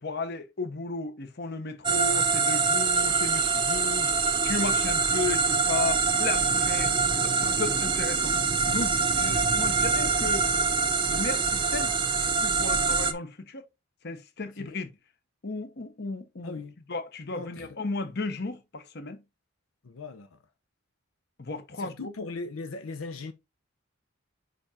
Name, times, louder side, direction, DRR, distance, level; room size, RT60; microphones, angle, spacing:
voice 1, 0.0-4.1 4.4-8.3 8.7-10.5 11.1-11.9 12.2-13.6 14.0-14.9 15.4-16.6 16.9-19.2 21.4-22.1, left 3 dB, 50° left, 1.0 m, -34 dB
sound 1, 1.8-13.1, right 4 dB, 25° right, 0.7 m, -25 dB
voice 2, 6.3-6.7 9.2-9.5 14.6-14.8 16.4-16.8 17.3-17.8 19.8-20.4 21.8-23.3, left 3 dB, 80° left, 0.7 m, -39 dB
5.0 x 5.0 x 4.2 m
head